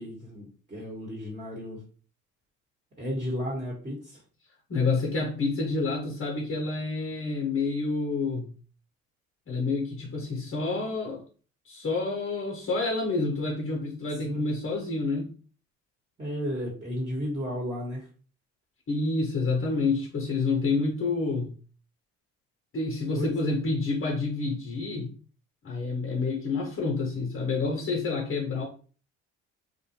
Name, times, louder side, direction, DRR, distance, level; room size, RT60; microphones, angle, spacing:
voice 1, 0.0-1.8 3.0-4.2 14.2-14.4 16.2-18.1 23.2-23.4, equal, 20° right, 1.2 m, -33 dB
voice 2, 4.7-8.5 9.5-11.2 11.6-15.3 18.9-21.5 22.7-25.1 25.6-28.7, left 3 dB, 40° left, 0.8 m, -28 dB
2.5 x 2.2 x 2.8 m
supercardioid pair, 75°, 32 cm